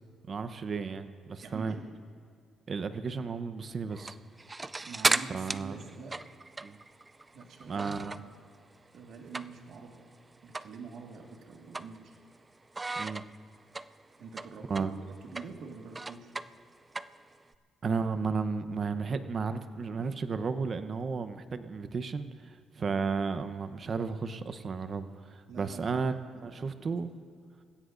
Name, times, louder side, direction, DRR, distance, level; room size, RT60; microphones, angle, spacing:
voice 1, 0.3-1.8 2.7-4.2 5.3-5.8 6.6-6.8 7.7-8.2 13.0-13.2 14.7-14.9 17.8-27.1, right 5 dB, 45° right, 10 dB, 0.9 m, -33 dB
voice 2, 1.4-1.8 4.9-6.1 7.3-8.1 8.9-10.0 10.4-12.2 14.2-14.9 15.2-16.3 22.7-23.1 25.5-26.0 26.4-26.7, right 5 dB, 75° right, 1 dB, 1.8 m, -46 dB
sound 1, 3.9-8.4 8.7-9.8 10.1-10.2 10.5-10.8 11.1-12.4 12.7-17.5, right 3 dB, 20° right, 0.4 m, -35 dB
27.5 x 15.5 x 2.6 m, 2.2 s
cardioid pair, 90°, 0 cm